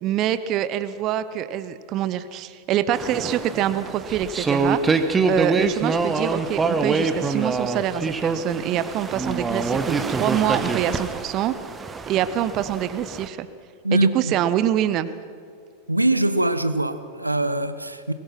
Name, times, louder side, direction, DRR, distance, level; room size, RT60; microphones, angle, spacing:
voice 1, 0.0-4.8 5.2-11.5 12.1-13.5 13.9-15.1, right 11 dB, 35° right, 14 dB, 0.8 m, -25 dB
sound 1, 2.9-13.3, right 4 dB, 15° right, 1.3 m, -25 dB
voice 2, 13.8-14.3 15.9-18.1, right 1 dB, 85° right, 12 dB, 0.9 m, -22 dB
22.5 x 19.5 x 5.9 m, 2.2 s
figure-of-eight pair, 90°, 0 cm